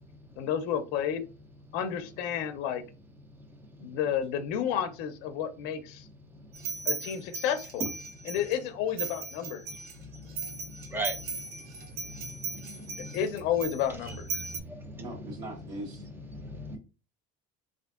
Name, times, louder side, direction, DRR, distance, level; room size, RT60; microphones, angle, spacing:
voice 1, 0.4-1.2 1.7-2.8 3.8-6.1 6.9-7.8 8.2-9.6 13.0-14.2, left 9 dB, 65° left, 0.5 m, -31 dB
sound 1, 6.5-8.6 9.0-14.6, right 5 dB, 60° right, 0.6 m, -37 dB
voice 2, 10.2-13.2 14.4-15.0 16.3-16.8, right 1 dB, 10° right, 0.4 m, -40 dB
voice 3, 15.0-16.1 16.7-16.8, right 1 dB, 75° right, 1.0 m, -40 dB
3.4 x 2.5 x 2.3 m
cardioid pair, 155°, 17 cm